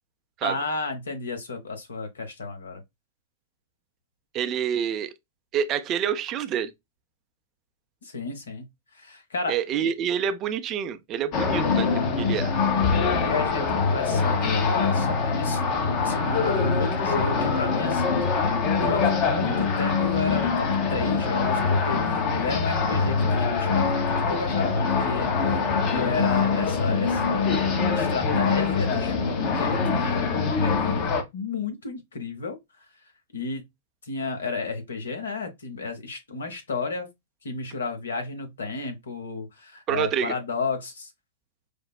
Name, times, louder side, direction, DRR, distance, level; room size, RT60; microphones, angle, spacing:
voice 1, 0.4-2.8 8.0-8.7 8.9-9.9 13.2-15.7 16.0-18.1 18.8-25.3 25.9-32.9 33.3-33.7 34.0-37.1 37.4-41.1, left 4 dB, 75° left, 1.0 m, -32 dB
voice 2, 4.3-5.1 5.5-6.7 9.5-12.5 39.9-40.3, right 8 dB, 35° right, 0.5 m, -27 dB
sound 1, 11.3-31.2, left 4 dB, 40° left, 0.8 m, -24 dB
5.1 x 2.0 x 2.3 m
figure-of-eight pair, 105°, 0 cm